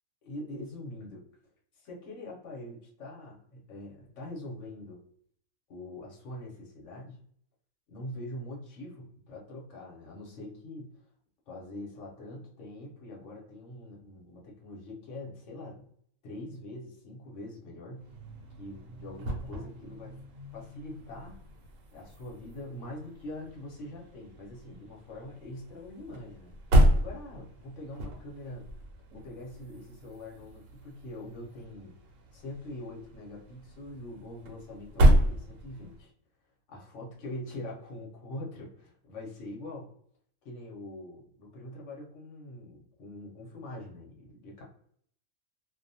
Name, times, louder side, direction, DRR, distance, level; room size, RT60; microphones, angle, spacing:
voice 1, 0.2-1.3 1.7-5.0 5.7-7.2 7.9-11.0 11.5-15.9 16.2-18.1 18.6-20.2 20.5-21.4 21.9-26.5 26.9-28.7 29.1-32.0 32.3-36.1 36.7-39.9 40.4-44.6, left 1 dB, 60° left, -2 dB, 1.0 m, -43 dB
sound 1, 18.0-36.0, equal, 70° right, 0.9 m, -31 dB
2.5 x 2.1 x 2.6 m, 0.62 s
omnidirectional pair, 1.5 m